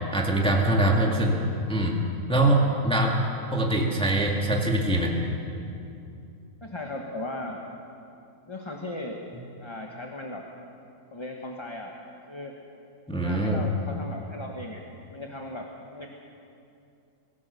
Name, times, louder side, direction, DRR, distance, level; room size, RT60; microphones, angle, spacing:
voice 1, 0.1-1.4 1.7-2.0 2.3-3.2 3.5-5.1 13.1-13.6, right 1 dB, 5° left, -1 dB, 1.9 m, -23 dB
voice 2, 6.6-7.6 8.5-9.2 9.6-10.4 11.1-11.9 12.3-12.5 13.2-14.8 15.1-16.1, left 2 dB, 20° left, 1 dB, 1.3 m, -37 dB
24.0 x 16.5 x 6.9 m, 2.6 s
omnidirectional pair, 1.6 m